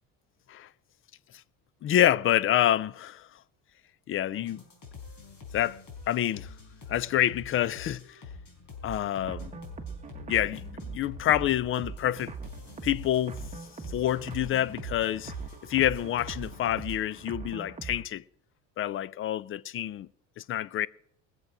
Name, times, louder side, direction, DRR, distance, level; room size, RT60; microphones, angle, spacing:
voice 1, 1.8-3.3 4.1-4.6 5.5-5.8 6.1-6.5 6.9-8.2 8.8-9.5 10.3-12.3 12.8-13.4 13.9-15.3 15.6-18.2 18.8-20.1 20.4-20.9, left 12 dB, 35° left, 0.5 m, -27 dB
sound 1, 4.3-17.0, left 4 dB, 50° left, 4.3 m, -46 dB
sound 2, 8.9-18.0, right 5 dB, 20° right, 1.3 m, -41 dB
20.5 x 7.7 x 4.9 m
cardioid pair, 110°, 36 cm